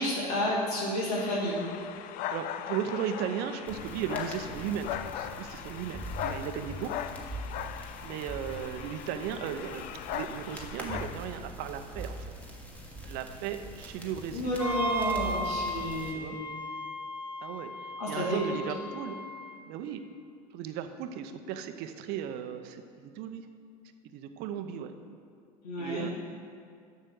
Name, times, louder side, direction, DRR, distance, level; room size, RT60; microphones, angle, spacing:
voice 1, 0.0-1.6 14.3-16.4 18.0-18.6 25.6-26.1, left 1 dB, 75° left, -4 dB, 2.0 m, -31 dB
sound 1, 1.2-11.4, left 10 dB, 45° left, 0.5 m, -39 dB
voice 2, 2.3-6.9 8.0-12.3 13.0-14.6 16.1-16.4 17.4-17.7 18.1-19.2 19.7-20.0 20.5-23.5 24.1-24.9 25.8-26.1, right 9 dB, 50° right, 8 dB, 0.7 m, -36 dB
sound 2, 3.7-16.1, equal, 5° left, 1.6 m, -43 dB
Wind instrument woodwind instrument, 14.6-19.6, right 1 dB, 10° right, 1.2 m, -35 dB
7.5 x 6.7 x 6.4 m, 2.2 s
hypercardioid pair, 80°, 20 cm